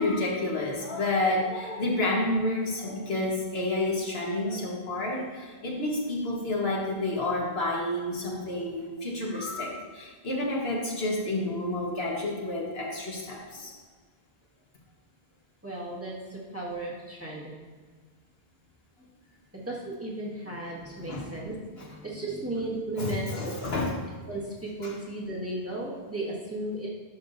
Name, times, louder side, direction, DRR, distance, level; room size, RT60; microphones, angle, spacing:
voice 1, 0.0-13.7 21.1-21.2 23.0-23.9 24.8-24.9, left 2 dB, 75° left, -3 dB, 1.7 m, -29 dB
voice 2, 15.6-17.5 19.0-19.1 19.5-23.5 24.3-26.9, right 1 dB, 15° right, -6 dB, 1.7 m, -35 dB
11.5 x 5.8 x 2.7 m, 1.5 s
omnidirectional pair, 1.0 m